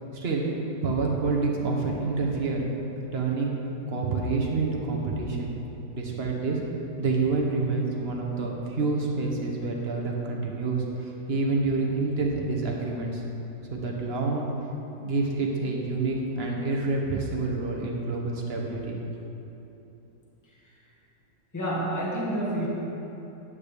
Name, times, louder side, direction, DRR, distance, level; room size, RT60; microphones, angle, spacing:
voice 1, 0.1-0.5 0.8-2.6 3.1-3.5 3.9-5.5 5.9-6.6 7.0-10.8 11.3-13.2 13.7-14.5 15.0-19.1, right 3 dB, 40° right, -1 dB, 1.0 m, -27 dB
voice 2, 21.5-22.7, right 1 dB, 10° left, -5 dB, 1.4 m, -28 dB
10.5 x 8.4 x 3.5 m, 3.0 s
omnidirectional pair, 2.0 m